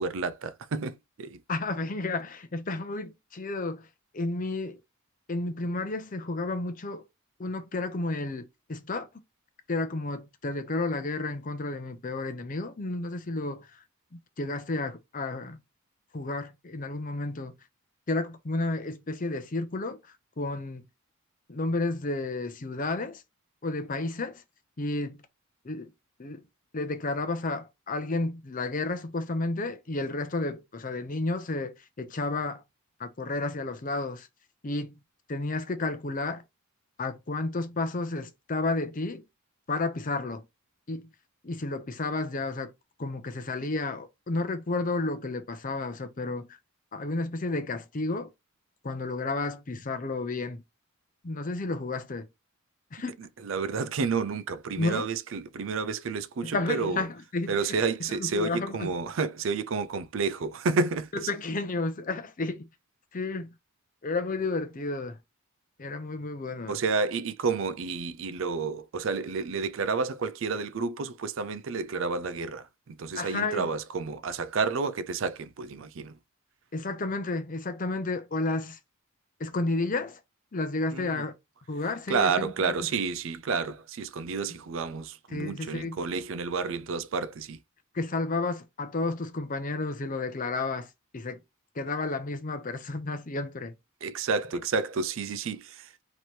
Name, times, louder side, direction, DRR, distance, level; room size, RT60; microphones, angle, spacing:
voice 1, 0.0-1.4 53.4-57.0 57.5-61.3 66.7-76.1 80.9-81.2 82.1-87.6 94.0-96.0, right 4 dB, 70° right, 0.4 m, -30 dB
voice 2, 1.5-3.9 4.1-4.8 5.3-7.0 7.4-9.1 9.7-13.7 14.4-15.6 16.1-17.5 18.1-20.0 20.4-20.8 21.5-23.2 23.6-24.4 24.8-25.2 25.6-25.9 26.2-26.4 26.7-32.6 33.0-34.3 34.6-35.0 35.3-36.4 37.0-39.2 39.7-40.4 40.9-41.1 41.4-42.7 43.0-46.5 46.9-48.3 48.8-50.6 51.2-52.3 52.9-53.1 54.8-55.1 56.4-57.8 58.3-58.9 61.1-62.7 63.1-63.5 64.0-65.2 65.8-66.7 73.1-73.7 76.7-78.8 79.4-80.2 80.5-81.3 81.7-82.8 85.3-86.0 87.9-91.4 91.8-93.7, left 2 dB, 40° left, 0.7 m, -31 dB
3.2 x 3.0 x 4.3 m
head